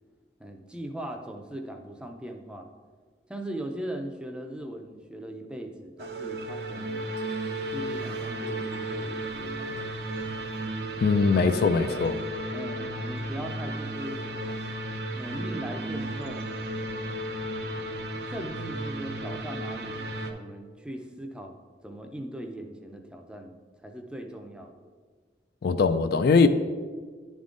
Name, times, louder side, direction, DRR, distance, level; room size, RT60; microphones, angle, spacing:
voice 1, 0.4-2.7 3.3-7.1 7.7-9.8 11.3-11.4 11.7-12.1 12.5-14.6 15.1-16.5 18.3-21.6 21.8-23.5 23.8-24.9, right 1 dB, 5° right, 0.5 m, -39 dB
sound 1, 6.0-20.3, right 1 dB, 60° right, 0.6 m, -34 dB
voice 2, 11.0-12.2 25.6-26.5, left 4 dB, 60° left, 0.3 m, -21 dB
10.5 x 3.6 x 3.7 m
head